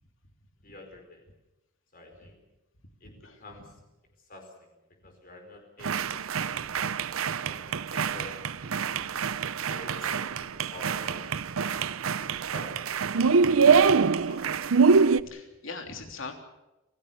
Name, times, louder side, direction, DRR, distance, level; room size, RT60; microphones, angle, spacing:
voice 1, 0.6-1.3 1.9-2.4 3.0-3.8 4.2-4.8 5.0-6.9 7.4-9.1 9.6-11.3 11.6-13.7 14.2-14.7, left 2 dB, 45° left, 3 dB, 4.7 m, -49 dB
voice 2, 3.0-3.4 13.2-13.3 15.2-16.3, left 4 dB, 60° left, 4 dB, 3.4 m, -41 dB
sound 1, 5.8-15.2, right 5 dB, 75° right, 0.7 m, -25 dB
28.5 x 17.0 x 7.0 m, 1.0 s
head